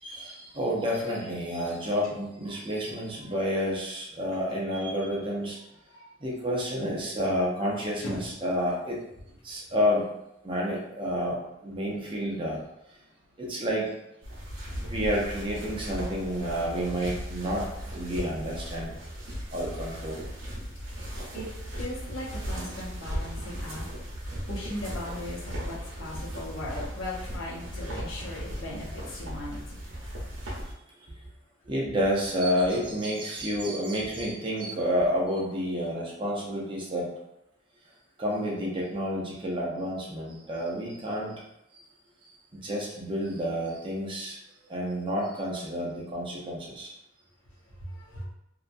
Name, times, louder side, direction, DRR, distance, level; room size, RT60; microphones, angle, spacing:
voice 1, 0.0-5.6 6.2-9.0 9.4-10.0 10.4-12.6 13.4-13.9 14.8-17.7 17.9-18.9 19.5-20.2 30.9-31.0 31.7-37.1 38.2-41.4 42.5-44.4 44.7-46.9, equal, 25° right, -3 dB, 0.6 m, -30 dB
sound 1, 14.2-30.7, equal, 75° right, 0.9 m, -37 dB
voice 2, 21.3-23.9 24.5-29.8 47.8-48.2, left 1 dB, 85° left, -4 dB, 0.8 m, -38 dB
2.8 x 2.3 x 2.5 m, 0.84 s
head